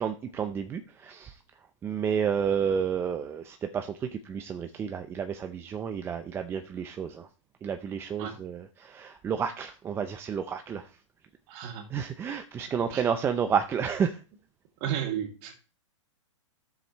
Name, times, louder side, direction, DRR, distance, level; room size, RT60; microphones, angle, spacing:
voice 1, 0.0-1.4 1.8-7.3 7.6-10.9 11.9-14.2, right 7 dB, 15° right, 8 dB, 0.5 m, -31 dB
voice 2, 11.5-11.9 12.9-13.0 14.8-15.6, right 9 dB, 35° right, 4 dB, 2.2 m, -33 dB
10.0 x 7.2 x 3.0 m, 0.35 s
hypercardioid pair, 140°, 16 cm